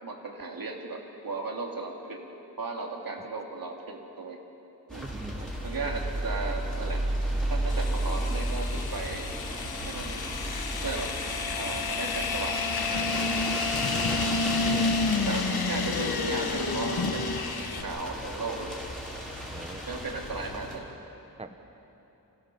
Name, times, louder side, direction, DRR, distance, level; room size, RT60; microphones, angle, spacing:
voice 1, 0.0-2.3 2.6-4.4 4.9-5.1 5.6-7.0 7.5-9.3 9.9-10.2 10.8-11.1 11.5-13.3 14.6-14.9 15.3-17.4 17.8-18.8 19.9-20.8, right 3 dB, 65° right, 1 dB, 2.7 m, -36 dB
sound 1, 4.9-20.8, right 1 dB, ahead, 4.2 m, -34 dB
voice 2, 5.0-5.5 13.5-14.0 14.7-15.4 19.5-19.8 21.4-21.5, right 2 dB, 15° right, 7 dB, 1.1 m, -42 dB
sound 2, 7.7-17.8, left 4 dB, 70° left, 1.5 m, -30 dB
27.0 x 16.0 x 7.0 m, 3.0 s
wide cardioid pair, 95°, 38 cm